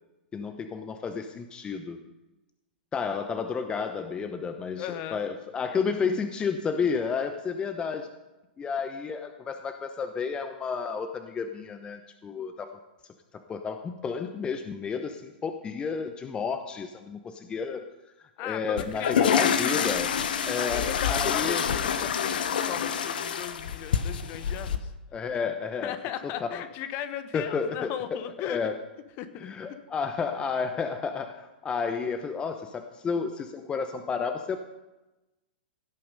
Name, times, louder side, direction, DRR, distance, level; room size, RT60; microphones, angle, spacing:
voice 1, 0.3-2.0 2.9-8.1 8.6-12.7 13.5-17.8 18.4-20.1 20.4-21.6 25.1-25.9 26.4-26.6 27.3-27.9 28.4-28.8 29.4-34.6, left 5 dB, 15° left, 7 dB, 0.8 m, -31 dB
voice 2, 4.8-5.2 18.4-19.6 20.7-24.9 25.8-28.6 29.2-29.5, left 11 dB, 35° left, 11 dB, 1.1 m, -37 dB
sound 1, 18.8-24.8, left 8 dB, 65° left, 1.0 m, -27 dB
16.5 x 8.7 x 5.4 m, 1.0 s
figure-of-eight pair, 105°, 5 cm